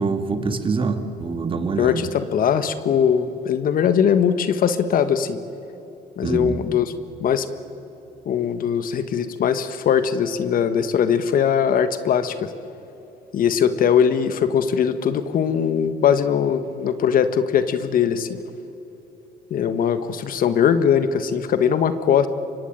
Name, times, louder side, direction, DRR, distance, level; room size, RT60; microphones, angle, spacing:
voice 1, 0.0-2.0 6.2-6.7, right 4 dB, 30° right, 7 dB, 2.3 m, -25 dB
voice 2, 1.8-5.4 6.2-6.9 7.2-7.5 8.2-12.5 13.3-18.4 19.5-22.3, left 8 dB, 55° left, 11 dB, 1.5 m, -20 dB
27.5 x 23.5 x 9.0 m, 3.0 s
cardioid pair, 110°, 17 cm